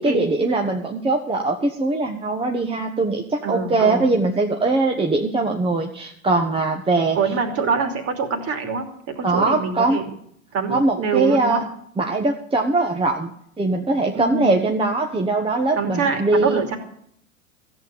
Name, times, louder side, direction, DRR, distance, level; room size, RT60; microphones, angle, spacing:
voice 1, 0.0-7.2 9.2-10.0 10.7-11.6 12.0-13.3 13.6-16.6, right 2 dB, 15° right, 2 dB, 1.3 m, -21 dB
voice 2, 3.4-4.1 7.1-10.1 10.5-11.6 14.1-14.6 15.7-16.8, right 5 dB, 35° right, 6 dB, 2.9 m, -24 dB
14.5 x 7.7 x 8.7 m, 0.68 s
hypercardioid pair, 95°, 41 cm